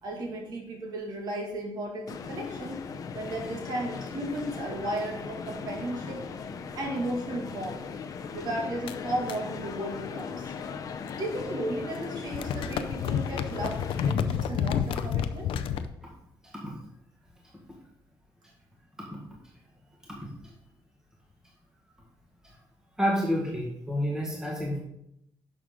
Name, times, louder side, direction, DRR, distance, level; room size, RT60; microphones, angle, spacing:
voice 1, 0.0-2.8 3.1-6.2 6.7-7.8 8.3-10.5 11.2-15.5, right 1 dB, 50° right, 0 dB, 2.4 m, -34 dB
sound 1, 2.1-14.1, left 5 dB, 45° left, 0.7 m, -39 dB
sound 2, 8.8-11.5 11.8-15.9, left 8 dB, 80° left, 0.6 m, -32 dB
voice 2, 23.0-24.8, equal, 5° right, -3 dB, 1.8 m, -29 dB
11.0 x 6.4 x 3.8 m, 0.78 s
cardioid pair, 160°, 9 cm